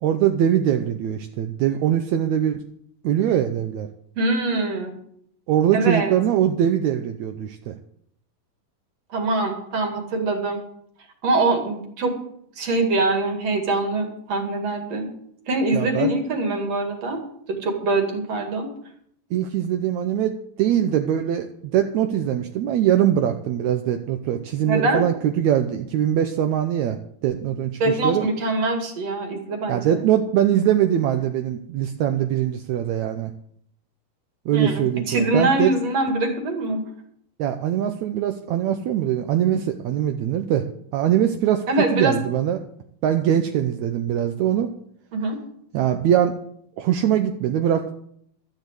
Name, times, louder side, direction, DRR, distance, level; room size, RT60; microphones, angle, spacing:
voice 1, 0.0-2.7 3.0-3.9 5.5-7.8 15.7-16.1 19.3-28.3 29.7-33.3 34.5-35.7 37.4-40.7 40.9-42.6 43.0-44.7 45.7-46.4 46.8-47.9, right 10 dB, 80° right, 7 dB, 1.7 m, -22 dB
voice 2, 4.2-5.0 5.7-6.1 9.1-10.6 11.2-12.1 12.6-15.1 15.5-17.2 17.5-18.7 24.7-25.0 27.8-30.0 34.5-36.8 41.7-42.2 45.1-45.4, right 2 dB, 50° right, 4 dB, 3.0 m, -23 dB
12.5 x 8.6 x 8.2 m, 0.68 s
omnidirectional pair, 4.1 m